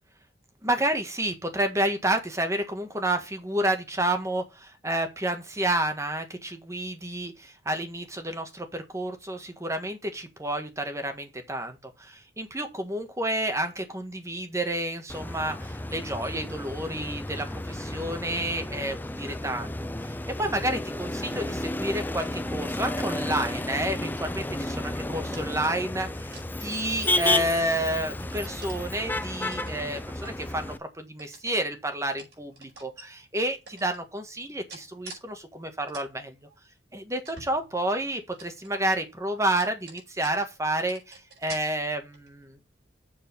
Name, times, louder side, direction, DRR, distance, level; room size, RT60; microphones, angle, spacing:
voice 1, 0.6-26.3 26.6-36.3 36.9-42.6, right 1 dB, 15° right, 1.6 m, -30 dB
Motor vehicle (road), 15.1-30.8, left 1 dB, 10° left, 0.4 m, -32 dB
sound 1, 25.3-25.9 26.3-26.5 27.0-27.9 28.3-28.8 29.5-30.8 31.2-31.7 32.1-33.0 33.7-34.0 34.7-35.2 35.6-36.1 36.5-36.6 37.2-38.0 38.3-39.0 39.4-40.6 40.9-41.6 42.1-42.4, right 3 dB, 70° right, 4.7 m, -47 dB
7.1 x 5.1 x 6.8 m
head